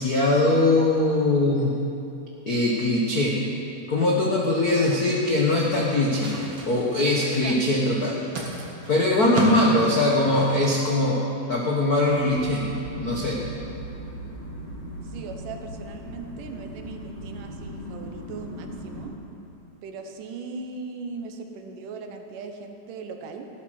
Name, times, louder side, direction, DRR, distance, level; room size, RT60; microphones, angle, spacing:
voice 1, 0.0-1.7 2.5-3.4 3.9-6.4 6.7-8.3 8.9-11.2 11.5-12.7 13.0-13.4, left 2 dB, 90° left, -3 dB, 0.8 m, -21 dB
voice 2, 4.5-5.0 7.4-7.6 9.4-9.7 15.0-19.1 19.8-23.5, right 4 dB, 80° right, 5 dB, 2.6 m, -39 dB
sound 1, 5.4-10.6, right 2 dB, 50° right, 2.3 m, -35 dB
sound 2, 12.1-19.1, equal, 50° left, 3.9 m, -38 dB
15.5 x 11.0 x 6.4 m, 2.8 s
omnidirectional pair, 3.8 m